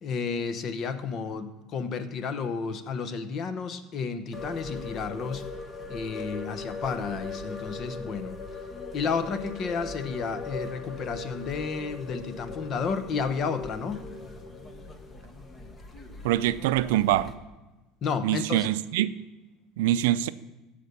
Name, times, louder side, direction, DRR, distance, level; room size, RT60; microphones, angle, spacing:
voice 1, 0.0-5.5 5.9-8.4 8.9-14.1 18.0-18.7, left 5 dB, 45° left, 0.9 m, -32 dB
sound 1, 4.3-17.3, left 3 dB, 25° left, 1.2 m, -40 dB
voice 2, 16.2-17.3 18.2-19.1 19.8-20.3, right 14 dB, 85° right, 0.4 m, -24 dB
14.5 x 5.2 x 6.8 m
supercardioid pair, 115°, 0 cm